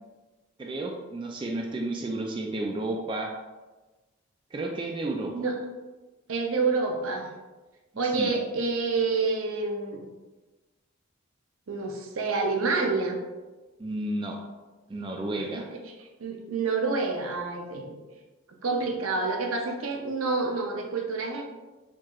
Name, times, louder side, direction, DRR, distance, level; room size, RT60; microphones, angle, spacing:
voice 1, 0.6-3.3 4.5-5.3 8.1-8.3 13.8-14.4 14.9-15.7, right 2 dB, 25° right, 1 dB, 0.3 m, -32 dB
voice 2, 6.3-7.3 8.0-10.1 11.7-13.2 15.5-15.7 16.0-18.0 18.6-21.4, right 4 dB, 85° right, 1 dB, 0.6 m, -28 dB
4.5 x 2.9 x 2.4 m, 1.2 s
head